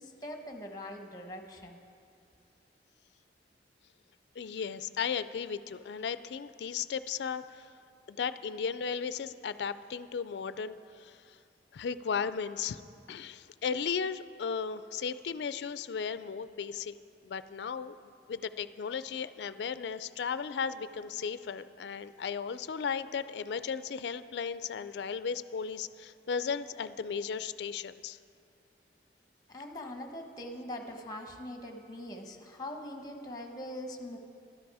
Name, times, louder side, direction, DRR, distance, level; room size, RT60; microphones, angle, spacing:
voice 1, 0.0-1.8 29.5-34.2, left 1 dB, 20° left, 4 dB, 1.0 m, -42 dB
voice 2, 4.4-7.7 8.1-11.2 11.7-12.8 13.1-17.0 17.2-17.9 18.3-28.2, left 6 dB, 65° left, 14 dB, 0.4 m, -35 dB
12.5 x 11.0 x 4.8 m, 2.4 s
head